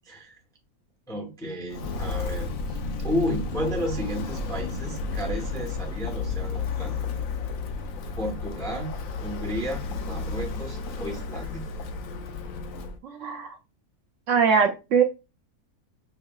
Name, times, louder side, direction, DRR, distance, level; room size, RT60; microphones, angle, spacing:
voice 1, 0.1-0.4 1.1-7.0 8.2-9.0 9.2-11.6, equal, 5° left, 0.4 m, -32 dB
Walk footsteps, 1.7-13.0, left 3 dB, 70° left, 1.0 m, -32 dB
voice 2, 14.3-15.0, right 6 dB, 65° right, 0.8 m, -21 dB
5.5 x 2.7 x 2.2 m
omnidirectional pair, 1.6 m